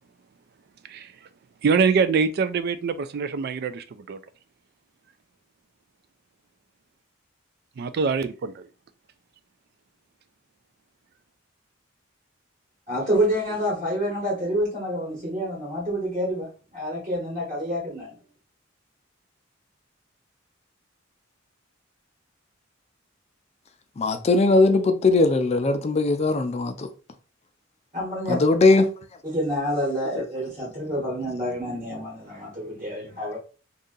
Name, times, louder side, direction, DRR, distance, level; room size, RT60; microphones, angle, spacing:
voice 1, 1.6-4.2 7.8-8.6, right 5 dB, 50° right, 0.3 m, -24 dB
voice 2, 12.9-18.2 27.9-28.4 29.2-33.4, equal, 35° right, 1.2 m, -28 dB
voice 3, 24.0-26.9 28.3-28.9, left 3 dB, 35° left, 0.4 m, -19 dB
2.7 x 2.5 x 3.7 m
head